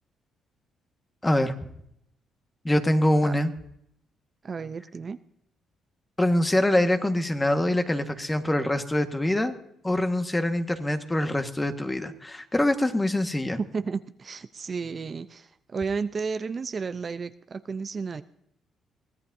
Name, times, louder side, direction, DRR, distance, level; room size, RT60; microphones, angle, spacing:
voice 1, 1.2-1.6 2.6-3.5 6.2-9.5 9.8-13.6, left 1 dB, 15° left, 7 dB, 1.6 m, -24 dB
voice 2, 4.4-5.2 13.7-18.2, right 5 dB, 40° right, 10 dB, 0.6 m, -32 dB
23.5 x 16.5 x 2.7 m, 0.75 s
cardioid pair, 90°, 0 cm